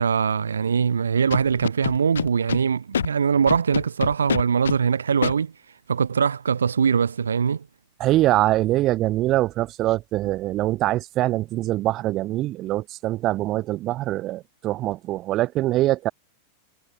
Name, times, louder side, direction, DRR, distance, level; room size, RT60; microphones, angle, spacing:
voice 1, 0.0-5.5 5.9-7.6, right 6 dB, 70° right, 0.7 m, -22 dB
Scratching (performance technique), 1.3-2.6 2.9-3.1 3.5-4.8 5.2-5.3, left 8 dB, 70° left, 0.5 m, -25 dB
voice 2, 8.0-16.1, right 16 dB, 35° right, 1.3 m, -23 dB
figure-of-eight pair, 90°, 0 cm